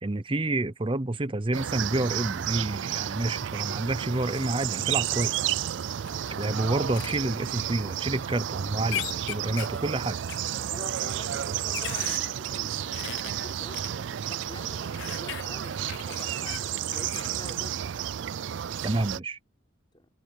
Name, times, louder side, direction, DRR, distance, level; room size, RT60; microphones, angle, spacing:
voice 1, 0.0-5.5 6.4-10.2 18.8-19.4, right 2 dB, 25° right, 0.7 m, -29 dB
sound 1, 1.5-19.2, right 10 dB, 65° right, 0.4 m, -32 dB
sound 2, 6.1-6.5 7.0-7.2 8.9-9.8 10.3-10.4 11.3-12.3 12.9-13.9 15.0-17.4, left 11 dB, 60° left, 0.5 m, -37 dB
voice 2, 10.7-18.0 19.9-20.1, left 2 dB, 25° left, 4.2 m, -47 dB
head